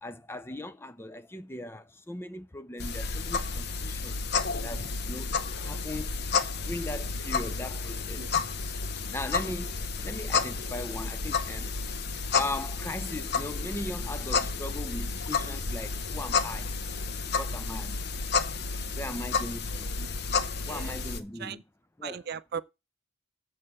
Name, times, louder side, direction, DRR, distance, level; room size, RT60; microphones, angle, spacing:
voice 1, 0.0-4.2 4.6-5.3 5.6-8.3 9.1-11.7 12.3-16.8 17.4-18.0 18.9-19.9 20.7-21.6 22.0-22.2, left 1 dB, 10° left, 0.5 m, -38 dB
sound 1, 2.8-21.2, left 4 dB, 50° left, 0.8 m, -31 dB
voice 2, 19.7-20.1 20.6-21.0 21.4-21.6 22.0-22.6, right 7 dB, 50° right, 0.5 m, -38 dB
7.6 x 6.5 x 7.2 m
head